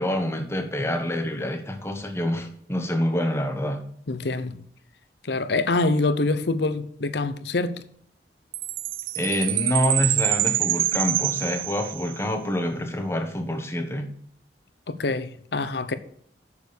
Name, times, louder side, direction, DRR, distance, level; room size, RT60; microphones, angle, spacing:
voice 1, 0.0-3.8 9.1-14.1, left 1 dB, 15° left, 1.2 m, -26 dB
voice 2, 4.1-4.6 5.2-7.8 14.9-15.9, left 3 dB, 70° left, 0.8 m, -25 dB
Chime, 8.5-12.2, right 15 dB, 50° right, 0.4 m, -26 dB
7.0 x 7.0 x 6.7 m
head